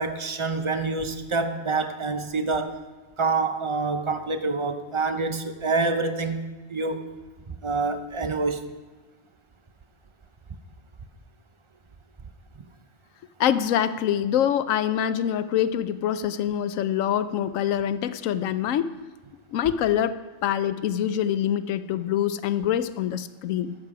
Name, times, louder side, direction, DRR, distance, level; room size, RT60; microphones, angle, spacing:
voice 1, 0.0-2.8 3.2-7.0 7.5-8.7, right 3 dB, 35° right, 8 dB, 0.5 m, -27 dB
voice 2, 13.4-18.9 19.5-20.2 20.4-23.7, left 10 dB, 90° left, 13 dB, 1.0 m, -25 dB
13.0 x 7.6 x 4.8 m, 1.3 s
omnidirectional pair, 1.3 m